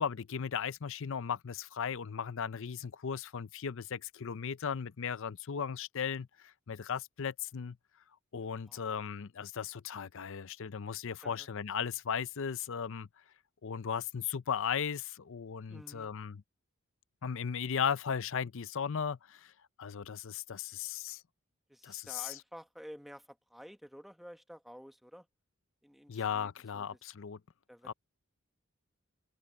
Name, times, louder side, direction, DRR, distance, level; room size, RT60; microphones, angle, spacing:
voice 1, 0.0-7.8 8.3-13.1 13.6-16.4 17.2-19.5 19.8-21.2 21.8-22.3 26.1-27.4 27.9-28.0, left 7 dB, 65° left, 0.6 m, -36 dB
voice 2, 8.4-8.9 11.2-11.5 15.7-16.1 21.7-25.3 25.8-27.0 27.7-27.9, equal, ahead, 1.2 m, -51 dB
open air
head